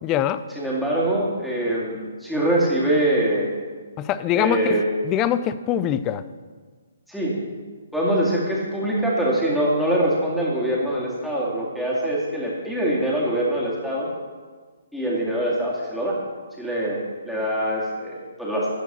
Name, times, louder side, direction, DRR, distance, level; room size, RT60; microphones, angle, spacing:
voice 1, 0.0-0.4 4.0-6.2, left 10 dB, 25° left, 14 dB, 0.4 m, -23 dB
voice 2, 0.6-3.5 4.3-4.8 7.1-7.3 7.9-14.1 14.9-16.2 16.6-17.0 17.2-18.7, right 1 dB, ahead, -6 dB, 2.1 m, -23 dB
12.5 x 4.5 x 6.7 m, 1.5 s
figure-of-eight pair, 135°, 0 cm